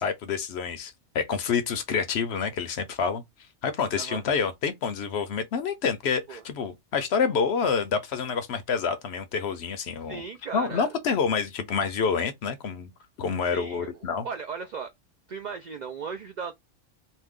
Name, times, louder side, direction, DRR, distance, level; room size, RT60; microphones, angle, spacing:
voice 1, 0.0-3.2 3.6-10.2 10.5-12.9 13.2-14.3, left 6 dB, 65° left, 0.8 m, -28 dB
voice 2, 10.1-10.9 13.5-14.9 15.3-16.5, right 5 dB, 75° right, 0.4 m, -37 dB
2.6 x 2.1 x 3.5 m
omnidirectional pair, 1.3 m